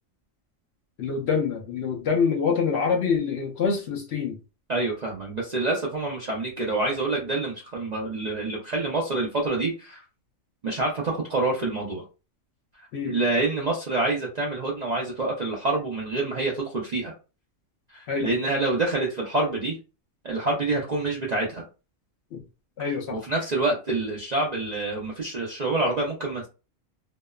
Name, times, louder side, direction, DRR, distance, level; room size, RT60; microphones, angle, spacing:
voice 1, 1.0-4.4 12.9-13.1 18.1-18.3 22.3-22.4 22.8-23.2, left 5 dB, 65° left, 0.8 m, -25 dB
voice 2, 4.7-10.0 10.6-12.0 13.0-17.1 17.9-19.8 20.2-21.6 23.1-26.5, right 2 dB, 55° right, 0.5 m, -27 dB
2.8 x 2.0 x 2.3 m
omnidirectional pair, 1.4 m